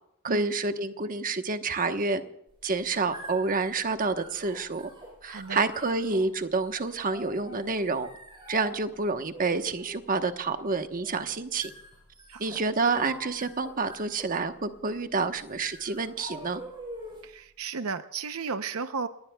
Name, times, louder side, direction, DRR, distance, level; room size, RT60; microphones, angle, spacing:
voice 1, 0.2-2.2 2.6-4.9 5.2-8.1 8.5-11.7 12.4-16.6, right 3 dB, 40° right, 8 dB, 1.1 m, -28 dB
sound 1, 2.5-17.4, right 1 dB, 25° right, 7.2 m, -46 dB
voice 2, 5.3-5.6 12.3-12.6 17.2-19.1, right 5 dB, 70° right, 10 dB, 0.7 m, -34 dB
30.0 x 19.0 x 2.3 m, 0.82 s
head